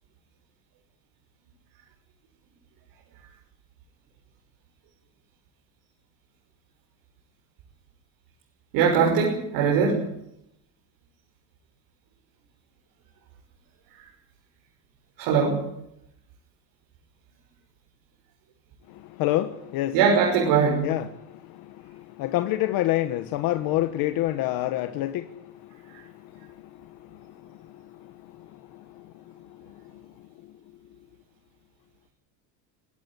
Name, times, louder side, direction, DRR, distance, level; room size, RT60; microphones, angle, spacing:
voice 1, 8.7-10.1 15.2-15.7 19.9-20.9, right 6 dB, 60° right, 6.1 m, -21 dB
voice 2, 18.9-20.0 20.8-30.5, left 15 dB, 55° left, 1.4 m, -30 dB
22.5 x 17.5 x 9.6 m
cardioid pair, 155°, 42 cm